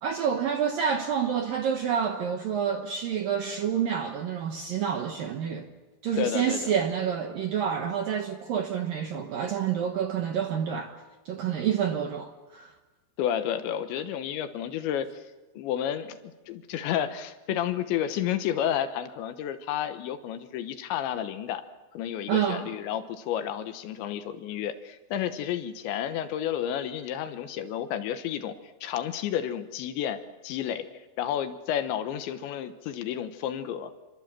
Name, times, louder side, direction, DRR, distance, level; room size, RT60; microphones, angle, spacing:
voice 1, 0.0-5.7 6.0-10.9 11.3-12.7 22.3-22.7, right 8 dB, 70° right, 2.2 m, -28 dB
voice 2, 6.2-6.7 13.2-15.2 15.5-16.2 16.5-21.6 21.9-28.6 28.8-30.9 31.2-33.9, left 10 dB, 75° left, 3.2 m, -31 dB
27.0 x 24.5 x 7.5 m
omnidirectional pair, 5.7 m